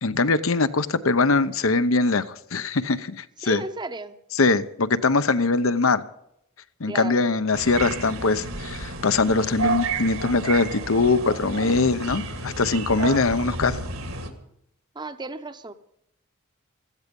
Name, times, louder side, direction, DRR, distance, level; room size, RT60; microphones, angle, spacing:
voice 1, 0.0-2.2 2.5-3.6 4.3-6.0 6.8-13.9, left 3 dB, 75° left, 0.9 m, -22 dB
voice 2, 3.4-4.2 6.9-7.3 14.9-15.7, right 2 dB, 20° right, 0.8 m, -34 dB
sound 1, 7.5-14.3, right 3 dB, 75° right, 2.3 m, -31 dB
16.5 x 14.5 x 5.3 m
head